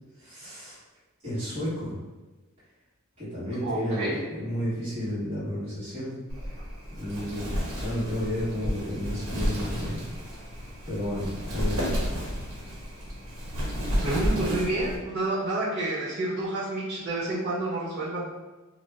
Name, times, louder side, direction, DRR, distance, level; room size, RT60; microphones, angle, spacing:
voice 1, 0.2-0.8 1.2-2.0 3.2-6.2 7.0-10.0 10.8-11.8, equal, 30° right, -14 dB, 1.2 m, -32 dB
voice 2, 3.6-4.2 14.0-18.2, right 2 dB, 50° right, -7 dB, 1.0 m, -29 dB
Wind, 6.3-15.0, equal, 80° right, 0.8 m, -31 dB
2.6 x 2.1 x 3.4 m, 1.2 s
head